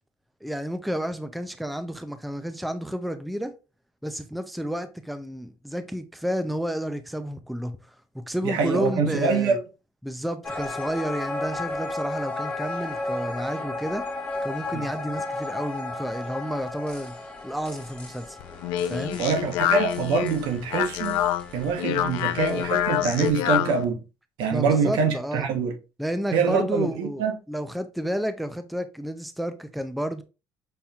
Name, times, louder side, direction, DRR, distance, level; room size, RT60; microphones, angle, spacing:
voice 1, 0.4-3.5 4.0-9.6 10.0-14.1 14.4-18.4 18.8-19.2 24.5-25.5 26.0-30.2, equal, ahead, 0.4 m, -31 dB
voice 2, 8.4-9.6 14.7-14.8 19.2-21.2 21.5-24.0 24.4-25.7 26.3-27.3, right 5 dB, 80° right, 0.9 m, -24 dB
sound 1, 10.4-23.3, left 2 dB, 15° left, 1.0 m, -34 dB
Speech, 18.4-23.8, left 12 dB, 85° left, 0.4 m, -27 dB
5.7 x 2.7 x 2.3 m
cardioid pair, 105°, 8 cm